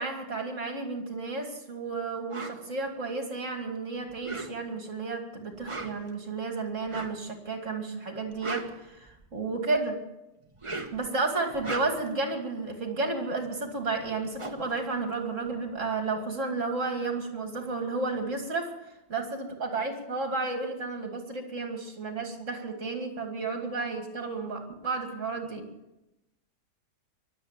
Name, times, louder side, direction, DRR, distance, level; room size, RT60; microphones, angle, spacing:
voice 1, 0.0-10.0 10.9-18.7 19.1-25.6, right 3 dB, 50° right, 3 dB, 2.9 m, -32 dB
sound 1, 2.3-2.6 4.1-4.8 5.5-6.1 6.9-7.2 8.2-9.4 10.4-11.1 11.5-12.2 13.7-13.8 14.0-15.7, right 3 dB, 20° right, 1.1 m, -39 dB
23.0 x 8.1 x 7.6 m, 0.92 s
omnidirectional pair, 1.7 m